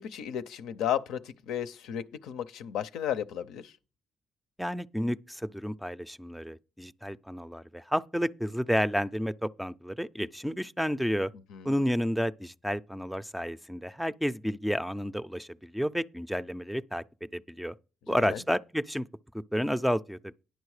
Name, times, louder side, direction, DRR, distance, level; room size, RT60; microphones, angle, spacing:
voice 1, 0.0-3.7 11.5-11.8 18.1-18.4, left 10 dB, 90° left, 0.5 m, -34 dB
voice 2, 4.6-11.3 11.6-17.0 17.3-17.7 18.1-19.1 19.3-20.3, equal, ahead, 0.4 m, -31 dB
10.5 x 6.2 x 4.8 m
cardioid pair, 90°, 0 cm